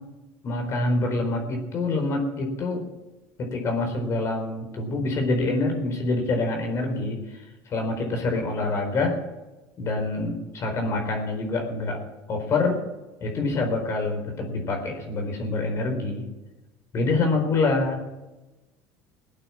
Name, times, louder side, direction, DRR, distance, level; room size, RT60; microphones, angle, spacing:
voice 1, 0.4-2.8 3.4-7.2 7.7-9.2 9.8-12.0 12.3-12.8 13.2-16.2 16.9-18.0, left 2 dB, 45° left, 3 dB, 4.4 m, -26 dB
18.5 x 8.9 x 7.5 m, 1.1 s
supercardioid pair, 105°, 7 cm